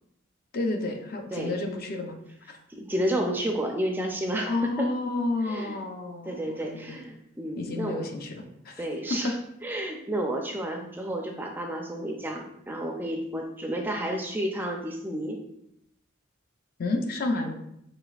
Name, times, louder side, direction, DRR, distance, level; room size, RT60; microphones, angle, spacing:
voice 1, 0.5-2.2 2.5-2.6 4.5-7.0 7.6-8.8 9.1-9.3 16.8-17.5, left 2 dB, 45° left, 4 dB, 0.5 m, -30 dB
voice 2, 2.8-4.9 5.4-5.8 6.3-8.1 8.8-9.3 9.6-15.4, right 1 dB, 10° right, 2 dB, 0.4 m, -31 dB
5.0 x 4.0 x 2.4 m, 0.79 s
head